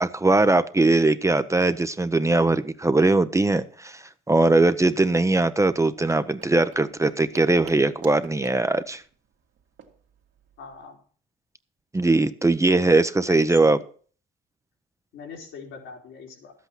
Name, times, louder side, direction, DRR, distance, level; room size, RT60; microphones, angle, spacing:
voice 1, 0.0-9.0 11.9-13.8, right 2 dB, 15° right, 12 dB, 0.7 m, -20 dB
sound 1, 5.7-10.9, right 7 dB, 75° right, 2.2 m, -49 dB
voice 2, 10.6-11.0 12.7-12.9 13.3-13.4 15.1-16.5, left 6 dB, 80° left, 0 dB, 3.7 m, -41 dB
12.0 x 8.4 x 5.9 m, 0.43 s
cardioid pair, 90°, 20 cm